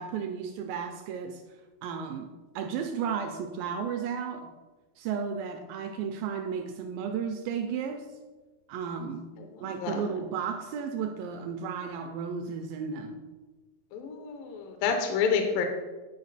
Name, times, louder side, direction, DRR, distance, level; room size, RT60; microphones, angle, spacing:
voice 1, 0.0-1.4 1.8-4.5 5.0-8.1 8.7-9.3 9.6-13.2, right 6 dB, 85° right, 2.0 m, -34 dB
voice 2, 13.9-15.7, left 6 dB, 75° left, 2.2 m, -28 dB
10.5 x 4.7 x 4.0 m
omnidirectional pair, 4.4 m